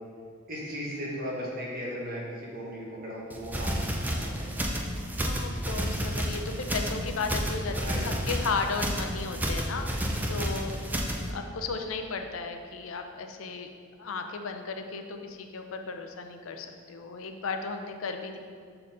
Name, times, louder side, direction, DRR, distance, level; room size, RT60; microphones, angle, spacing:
voice 1, 0.5-4.7 7.8-8.2, equal, 50° right, -5 dB, 1.6 m, -37 dB
sound 1, 3.3-11.3, equal, 10° right, 0.4 m, -31 dB
voice 2, 5.2-7.7 8.0-11.0 11.3-13.7 14.0-18.4, left 4 dB, 85° left, 5 dB, 0.5 m, -35 dB
6.7 x 4.3 x 3.8 m, 2.2 s
head